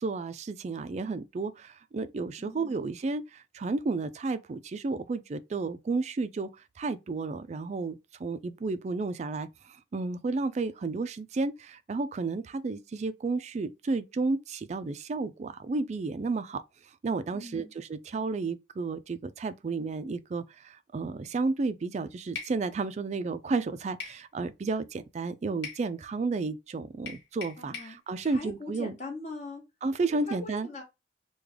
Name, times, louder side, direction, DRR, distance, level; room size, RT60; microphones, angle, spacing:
voice 1, 0.0-6.5 6.8-16.6 17.0-28.9 29.8-30.7, right 3 dB, 40° right, 0.3 m, -32 dB
voice 2, 2.4-2.7 17.3-17.7 27.6-29.6 30.3-30.8, left 2 dB, 40° left, 1.1 m, -41 dB
sound 1, 22.4-22.6 24.0-24.2 25.6-25.9 27.1-28.0, left 5 dB, 70° left, 1.5 m, -40 dB
3.3 x 2.3 x 3.5 m
head